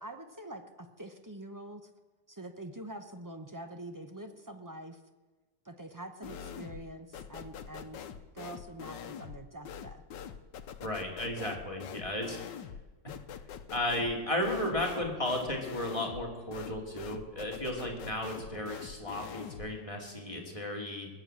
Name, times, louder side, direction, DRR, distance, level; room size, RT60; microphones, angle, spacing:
voice 1, 0.0-1.9 2.3-5.0 5.6-8.0 8.3-10.0, right 1 dB, 15° right, 7 dB, 0.7 m, -45 dB
sound 1, 6.2-6.9 7.1-19.7, left 8 dB, 85° left, 1.5 m, -44 dB
voice 2, 10.8-12.4 13.7-21.1, left 1 dB, 20° left, 0 dB, 2.6 m, -34 dB
20.5 x 8.1 x 8.8 m, 1.2 s
omnidirectional pair, 1.9 m